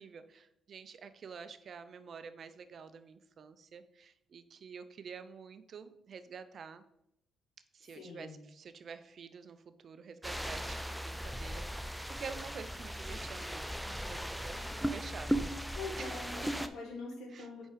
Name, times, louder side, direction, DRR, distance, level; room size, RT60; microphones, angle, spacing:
voice 1, 0.0-6.8 7.7-15.3 16.0-16.1 17.3-17.5, right 6 dB, 55° right, 11 dB, 0.5 m, -49 dB
voice 2, 7.9-8.4 14.5-15.0 15.7-17.7, left 3 dB, 80° left, 1 dB, 1.6 m, -44 dB
sound 1, 10.2-16.7, equal, ahead, 0.5 m, -37 dB
5.2 x 4.8 x 5.0 m, 0.82 s
cardioid pair, 90°, 0 cm